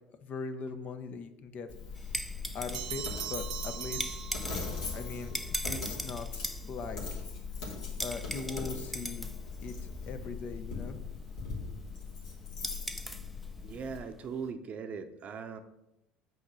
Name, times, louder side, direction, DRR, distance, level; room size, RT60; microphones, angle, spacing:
voice 1, 0.2-2.2 2.5-3.0 3.3-4.2 4.9-7.3 8.0-11.0, left 4 dB, 50° left, 9 dB, 0.7 m, -41 dB
Coin (dropping), 1.7-14.0, left 4 dB, 80° left, 1.7 m, -40 dB
sound 1, 2.0-14.5, equal, ahead, 0.5 m, -42 dB
Bell, 2.7-5.0, right 10 dB, 85° right, 0.5 m, -40 dB
voice 2, 13.6-15.6, right 6 dB, 40° right, 8 dB, 0.7 m, -40 dB
7.1 x 3.1 x 6.1 m, 0.89 s
hypercardioid pair, 70°, 4 cm